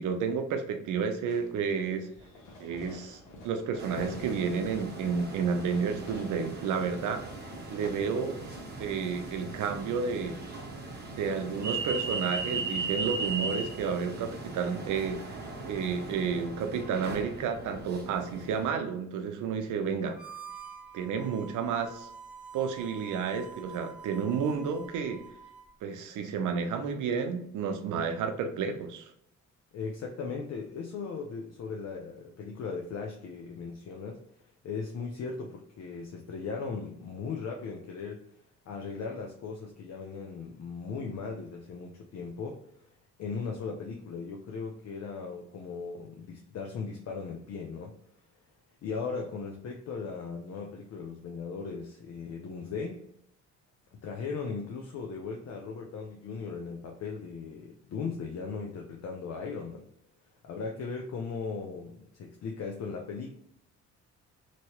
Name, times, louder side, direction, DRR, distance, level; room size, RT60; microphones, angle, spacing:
voice 1, 0.0-2.1 2.6-7.3 7.7-8.4 8.8-10.4 11.1-15.2 15.6-20.2 20.9-22.1 22.5-25.2 25.8-29.1, right 6 dB, 80° right, 6 dB, 0.7 m, -31 dB
Fireworks, 1.2-10.3, left 1 dB, 85° left, 1.1 m, -50 dB
sound 1, 3.8-18.7, right 3 dB, 35° right, 1.0 m, -38 dB
Harmonica, 20.1-25.7, right 6 dB, 5° right, 0.6 m, -47 dB
voice 2, 29.7-38.2 38.7-42.6 43.2-47.9 48.8-53.0 53.9-59.9 60.4-63.3, left 5 dB, 60° left, 1 dB, 0.6 m, -38 dB
3.0 x 2.8 x 3.0 m, 0.71 s
cardioid pair, 90°, 30 cm